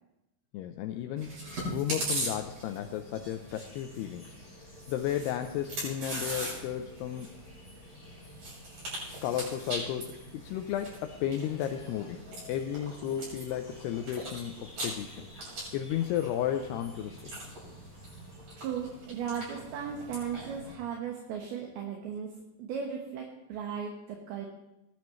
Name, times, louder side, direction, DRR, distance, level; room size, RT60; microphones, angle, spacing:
voice 1, 0.5-1.3 1.7-4.3 4.9-7.4 9.2-15.3 15.7-17.3, left 10 dB, 90° left, 7 dB, 2.3 m, -33 dB
Chewing mastication, 1.2-20.7, right 1 dB, 45° right, 7.6 m, -41 dB
sound 1, 3.5-18.4, left 1 dB, 10° left, 3.1 m, -57 dB
voice 2, 18.6-22.3 22.6-24.5, right 7 dB, 70° right, 1 dB, 2.8 m, -36 dB
20.0 x 11.5 x 3.1 m, 0.93 s
omnidirectional pair, 5.3 m